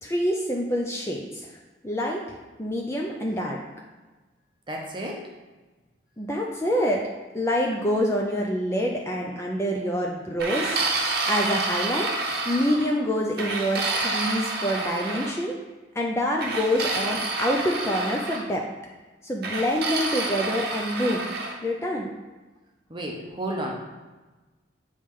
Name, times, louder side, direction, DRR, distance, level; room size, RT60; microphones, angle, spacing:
voice 1, 0.0-1.5 1.8-2.2 2.6-3.6 6.2-7.1 7.3-15.6 16.0-18.7 19.2-21.3 21.6-22.1, equal, 15° left, -1 dB, 0.4 m, -26 dB
voice 2, 4.7-5.3 22.9-23.7, right 1 dB, 25° right, 0 dB, 0.8 m, -32 dB
sound 1, 10.4-12.9 13.4-15.3 16.4-18.4 19.4-21.6, right 3 dB, 55° right, 0.8 m, -28 dB
8.4 x 3.1 x 3.7 m, 1.2 s
head